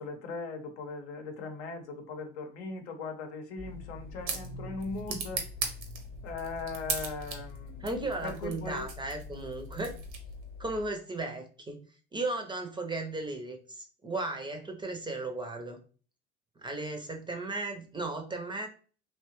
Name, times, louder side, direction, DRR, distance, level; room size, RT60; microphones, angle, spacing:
voice 1, 0.0-5.7 6.2-7.9 8.2-8.9, left 4 dB, 75° left, 0.7 m, -39 dB
sound 1, 3.6-10.8, left 6 dB, 35° left, 0.8 m, -46 dB
sound 2, 3.6-10.5, right 5 dB, 75° right, 0.8 m, -40 dB
voice 2, 7.8-10.0 10.6-11.8 12.1-15.8 16.6-18.7, right 2 dB, 15° right, 0.5 m, -35 dB
2.8 x 2.2 x 3.0 m
hypercardioid pair, 75°, 34 cm